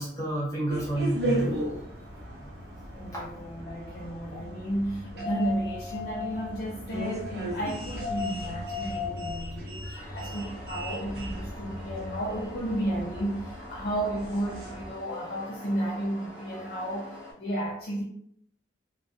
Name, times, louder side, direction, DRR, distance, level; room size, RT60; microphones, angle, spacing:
voice 1, 0.0-1.6 3.1-3.2 9.8-10.2, right 1 dB, 20° left, -7 dB, 0.9 m, -30 dB
sound 1, 0.7-14.9, equal, 60° right, 0.6 m, -35 dB
voice 2, 2.9-18.0, right 1 dB, 55° left, -3 dB, 0.4 m, -33 dB
sound 2, 9.9-17.3, equal, 5° right, 0.7 m, -45 dB
2.2 x 2.1 x 2.7 m, 0.70 s
head